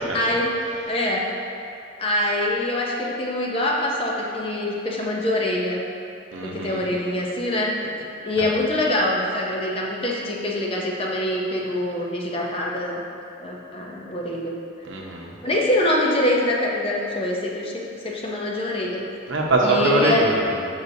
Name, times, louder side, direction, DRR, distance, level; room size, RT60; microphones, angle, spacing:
voice 1, 0.1-0.5 0.9-1.4 2.0-5.8 6.4-7.9 8.2-13.0 13.4-14.5 15.4-19.0 19.6-20.3, left 1 dB, 30° left, -2 dB, 0.6 m, -24 dB
voice 2, 6.3-6.8 8.4-8.5 14.9-15.3 19.3-20.7, right 2 dB, 75° right, -1 dB, 0.8 m, -22 dB
6.5 x 5.4 x 2.7 m, 2.6 s
head